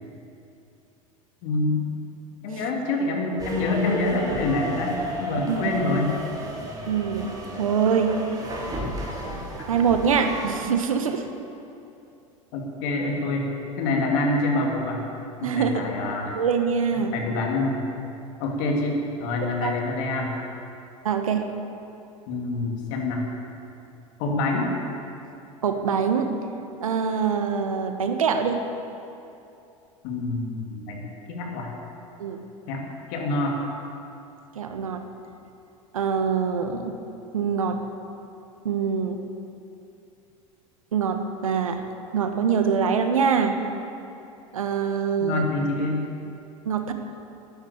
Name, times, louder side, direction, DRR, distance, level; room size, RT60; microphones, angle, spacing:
voice 1, 1.4-1.9 2.4-6.1 12.5-13.5 13.8-15.0 15.4-16.4 17.1-17.8 18.4-20.4 22.3-23.2 24.2-24.7 30.0-31.0 31.3-31.7 32.7-32.8 33.1-33.6 45.2-46.0, left 2 dB, 60° left, 1 dB, 2.9 m, -26 dB
sound 1, 3.4-10.6, right 1 dB, 20° right, 3.6 m, -32 dB
voice 2, 5.4-5.8 6.9-8.2 9.7-11.2 15.4-15.9 16.4-17.2 19.6-19.8 21.0-21.5 25.6-26.3 26.8-28.6 32.2-32.4 34.5-35.0 35.9-37.0 37.3-37.8 38.6-39.2 40.9-41.8 42.1-43.6 44.5-45.4 46.6-46.9, right 6 dB, 85° right, 7 dB, 1.3 m, -24 dB
13.0 x 10.0 x 8.5 m, 2.7 s
hypercardioid pair, 85°, 17 cm